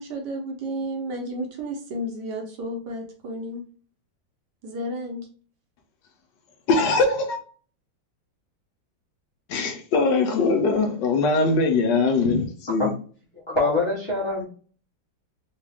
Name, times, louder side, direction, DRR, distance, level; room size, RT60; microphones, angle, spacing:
voice 1, 0.0-3.7 4.6-5.3, equal, 65° right, 1.4 m, -32 dB
voice 2, 6.7-7.4 9.5-12.9, left 3 dB, 75° left, 1.3 m, -21 dB
voice 3, 13.5-14.5, left 2 dB, 20° left, 0.9 m, -24 dB
3.7 x 2.4 x 3.3 m
omnidirectional pair, 2.1 m